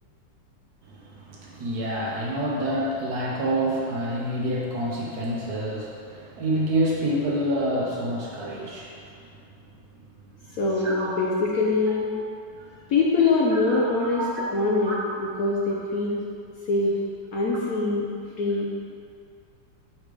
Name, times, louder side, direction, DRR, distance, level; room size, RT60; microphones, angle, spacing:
voice 1, 0.8-9.1 10.4-11.3 12.0-12.2 12.5-12.8 13.5-14.4 14.8-15.0, right 1 dB, 60° right, -4 dB, 1.3 m, -28 dB
voice 2, 10.6-12.1 12.9-14.2 14.5-16.2 16.7-17.0 17.3-18.1 18.4-18.8, left 3 dB, 65° left, -4 dB, 1.0 m, -23 dB
7.2 x 4.9 x 3.3 m, 2.4 s
omnidirectional pair, 2.0 m